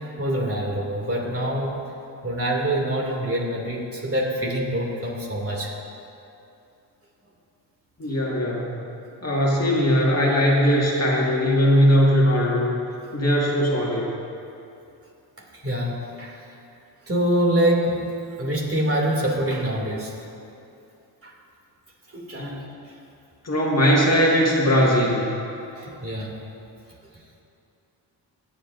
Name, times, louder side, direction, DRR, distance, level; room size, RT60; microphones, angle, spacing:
voice 1, 0.0-1.8 2.2-5.7 15.6-16.4 17.1-18.1 18.4-20.1 21.2-21.3 22.1-22.6 25.8-26.3, right 1 dB, 30° right, -3 dB, 2.5 m, -25 dB
voice 2, 8.0-8.9 9.2-12.7 13.1-14.1 22.4-22.7 23.4-25.3, equal, 35° left, -4 dB, 1.9 m, -20 dB
21.5 x 7.5 x 2.6 m, 2.7 s
cardioid pair, 60°, 42 cm